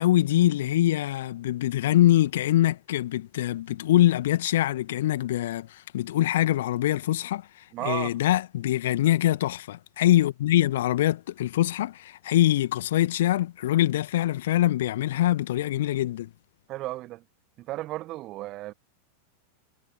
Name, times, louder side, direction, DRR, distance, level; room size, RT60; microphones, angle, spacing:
voice 1, 0.0-16.3, left 14 dB, 55° left, 1.9 m, -24 dB
voice 2, 7.7-8.2 16.7-17.2 17.6-18.7, right 17 dB, 35° right, 1.6 m, -34 dB
figure-of-eight pair, 90°, 0 cm